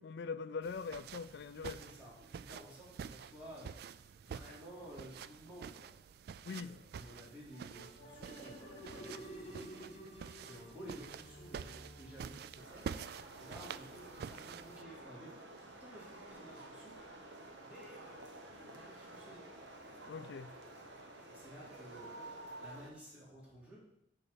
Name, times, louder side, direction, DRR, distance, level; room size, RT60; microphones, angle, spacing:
voice 1, 0.0-1.8 6.4-6.8 20.1-20.5, left 5 dB, 65° left, 0.4 m, -42 dB
sound 1, 0.6-14.8, right 7 dB, 60° right, 0.3 m, -49 dB
voice 2, 1.8-5.9 6.5-9.6 10.5-12.8 13.4-16.9 17.6-19.4 21.3-23.8, equal, 10° right, 3.3 m, -54 dB
sound 2, 7.5-12.9, equal, 40° left, 1.5 m, -51 dB
sound 3, 12.6-22.9, right 2 dB, 85° right, 1.2 m, -51 dB
7.0 x 4.5 x 6.9 m
head